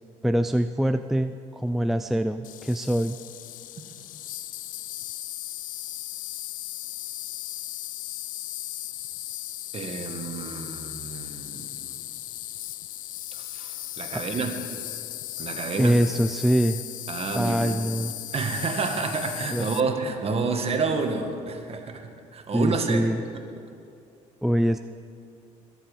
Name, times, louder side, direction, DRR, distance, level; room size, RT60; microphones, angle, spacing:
voice 1, 0.2-3.2 15.8-16.8 17.3-18.1 19.5-19.7 22.5-23.2 24.4-24.8, right 1 dB, ahead, 8 dB, 0.4 m, -24 dB
Insect, 2.4-19.8, left 14 dB, 60° left, 0.5 m, -37 dB
voice 2, 9.7-11.9 13.3-14.6 15.4-15.9 17.1-17.8 18.3-23.0 23.3-23.4, right 4 dB, 40° right, 4 dB, 1.8 m, -29 dB
22.5 x 7.6 x 5.2 m, 2.5 s
supercardioid pair, 75°, 15 cm